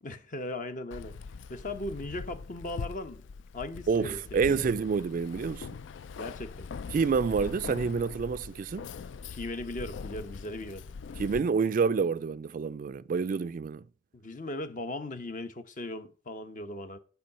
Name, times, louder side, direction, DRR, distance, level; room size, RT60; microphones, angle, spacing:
voice 1, 0.0-1.1 1.5-3.2 3.5-4.7 6.1-6.7 9.3-10.9 14.1-17.0, left 2 dB, 45° left, 0.9 m, -38 dB
Keys jangling, 0.9-11.4, left 5 dB, 80° left, 0.4 m, -42 dB
voice 2, 3.9-5.8 6.9-8.9 11.2-13.9, right 5 dB, 45° right, 0.3 m, -28 dB
10.5 x 4.8 x 5.6 m
head